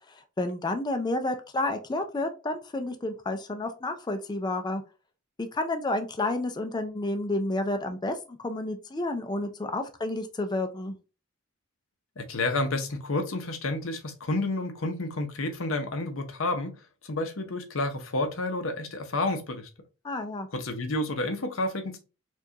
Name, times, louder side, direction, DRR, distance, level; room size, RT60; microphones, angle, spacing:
voice 1, 0.0-4.8 5.4-11.0 20.0-20.5, left 2 dB, 20° left, 7 dB, 0.4 m, -30 dB
voice 2, 12.2-16.7 17.0-19.7 20.5-22.0, left 2 dB, 90° left, 6 dB, 0.8 m, -30 dB
4.5 x 2.4 x 2.8 m, 0.31 s
head